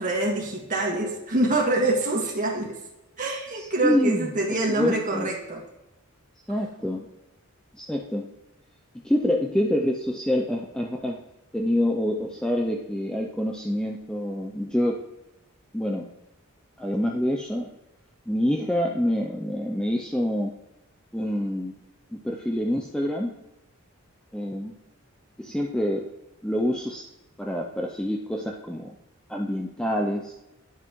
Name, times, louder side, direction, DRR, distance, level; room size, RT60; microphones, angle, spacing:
voice 1, 0.0-2.8 3.2-5.6, right 2 dB, 40° right, -2 dB, 1.7 m, -25 dB
voice 2, 3.5-4.3 4.7-5.3 6.5-7.1 7.7-8.3 9.0-11.2 11.5-15.0 15.7-16.1 16.8-17.7 18.3-20.5 21.1-21.8 22.1-23.3 24.3-24.7 25.4-26.1 26.4-27.1 27.4-29.0 29.3-30.3, left 1 dB, 5° left, 0 dB, 0.5 m, -26 dB
9.9 x 5.6 x 3.1 m, 0.95 s
head